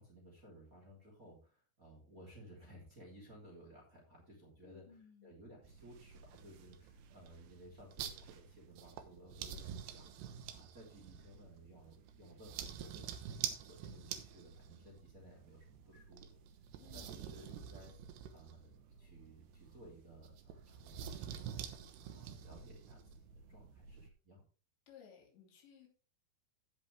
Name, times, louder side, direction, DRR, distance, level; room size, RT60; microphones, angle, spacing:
voice 1, 0.0-13.3 13.6-16.4 16.9-18.0 18.3-21.7 22.1-24.4, equal, 20° right, -2 dB, 3.0 m, -58 dB
voice 2, 4.6-5.3 16.8-17.4 24.9-25.9, left 8 dB, 80° left, 0 dB, 5.3 m, -60 dB
sound 1, 5.6-24.1, right 9 dB, 75° right, 3.1 m, -48 dB
15.5 x 6.2 x 3.4 m, 0.36 s
omnidirectional pair, 5.1 m